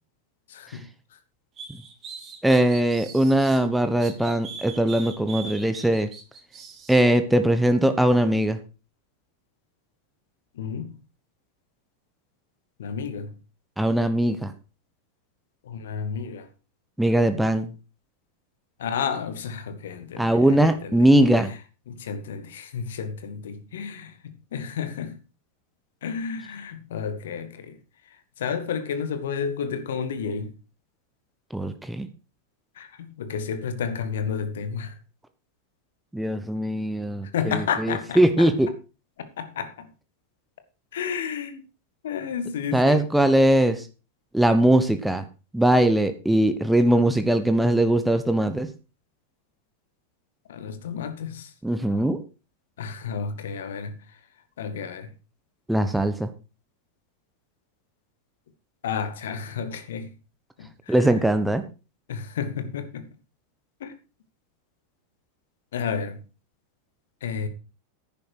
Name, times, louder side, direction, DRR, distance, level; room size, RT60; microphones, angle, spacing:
voice 1, 0.5-0.9 10.5-10.9 12.8-13.3 15.6-16.5 18.8-21.1 21.9-25.2 26.0-27.8 28.4-30.5 32.8-35.0 37.3-38.5 39.4-39.9 40.9-41.6 42.0-43.0 50.5-51.5 52.8-54.0 54.6-55.1 58.8-60.1 60.6-61.2 62.1-63.1 63.8-63.9 65.7-66.2 67.2-67.5, left 6 dB, 60° left, 1.9 m, -31 dB
sound 1, 1.6-3.6 4.0-7.0, right 5 dB, 25° right, 3.4 m, -41 dB
voice 2, 2.4-6.1 6.9-8.6 13.8-14.5 17.0-17.7 20.2-21.5 31.5-32.1 36.1-38.7 42.7-43.8 44.3-45.2 45.5-48.7 51.6-52.2 55.7-56.3 60.9-61.6, right 1 dB, 5° right, 1.1 m, -20 dB
11.0 x 9.8 x 4.7 m
figure-of-eight pair, 90°, 0 cm